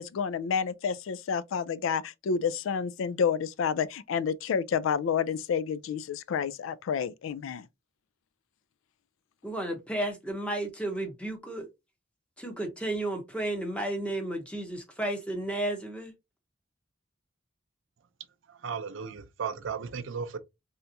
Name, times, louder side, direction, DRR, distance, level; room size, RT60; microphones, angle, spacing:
voice 1, 0.0-7.7, left 6 dB, 80° left, 0.3 m, -29 dB
voice 2, 9.4-11.7 12.4-16.1, right 1 dB, 5° left, 0.8 m, -33 dB
voice 3, 18.5-20.4, right 6 dB, 75° right, 0.5 m, -35 dB
3.4 x 2.8 x 2.6 m
head